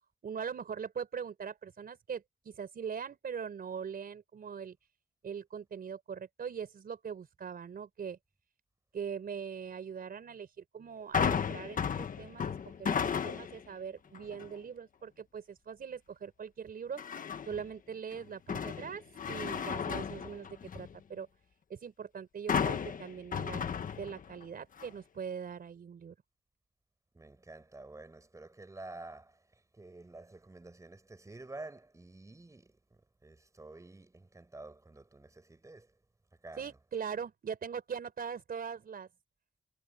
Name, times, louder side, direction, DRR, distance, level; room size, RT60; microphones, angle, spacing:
voice 1, 0.2-4.8 5.2-8.2 8.9-12.5 12.8-17.0 17.5-21.3 21.7-23.7 23.9-26.1 36.6-39.1, right 7 dB, 50° right, 4.3 m, -41 dB
sound 1, 11.1-13.7 14.1-14.5 17.0-17.7 18.1-21.0 22.5-24.4 24.8-24.9, left 7 dB, 45° left, 1.3 m, -34 dB
voice 2, 27.1-36.0 36.4-36.8, right 2 dB, 15° right, 6.0 m, -50 dB
wide cardioid pair, 130°, 19 cm